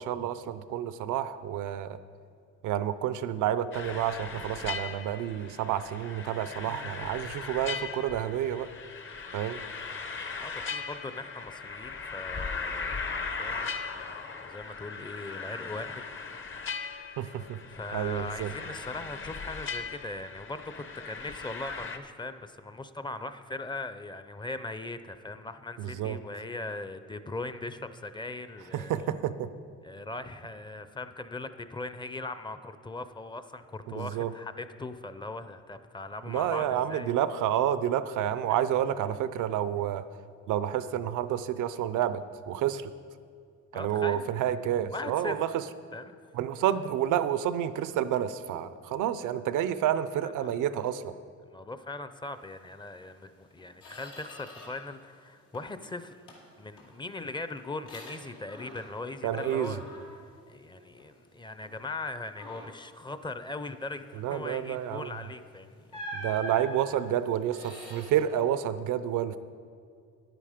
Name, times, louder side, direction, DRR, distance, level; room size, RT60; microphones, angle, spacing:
voice 1, 0.0-2.0 2.6-8.7 9.3-9.6 17.2-17.6 17.9-18.5 25.8-26.2 28.7-29.5 33.9-34.3 36.3-40.0 40.5-42.9 43.7-45.6 46.3-51.1 59.2-59.8 64.2-65.1 66.1-69.4, right 10 dB, 85° right, 13 dB, 0.6 m, -29 dB
sound 1, 3.7-22.0, left 5 dB, 40° left, 0.8 m, -38 dB
voice 2, 10.4-17.3 17.7-29.1 29.8-37.1 38.5-38.6 43.7-44.3 44.9-45.4 45.9-46.2 50.2-50.5 51.5-56.2 56.6-59.8 60.5-66.0, left 2 dB, 15° left, 11 dB, 0.5 m, -40 dB
Squeak, 53.0-53.1 53.5-54.9 55.3-55.8 56.3-59.1 59.4-61.2 61.6-61.8 62.3-62.9 65.0-65.2 65.9-68.1, equal, 90° left, 2.4 m, -45 dB
10.5 x 9.1 x 5.0 m, 2.3 s
cardioid pair, 90°, 30 cm